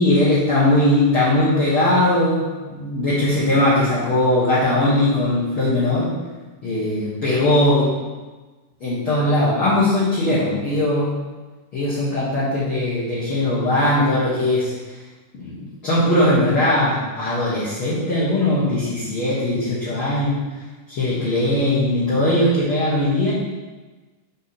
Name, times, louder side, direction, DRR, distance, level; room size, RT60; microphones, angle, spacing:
voice 1, 0.0-6.1 6.6-7.8 8.8-11.1 11.7-14.7 15.3-20.4 20.9-23.3, left 1 dB, 55° left, -9 dB, 1.6 m, -19 dB
8.4 x 4.9 x 4.2 m, 1.3 s
omnidirectional pair, 4.5 m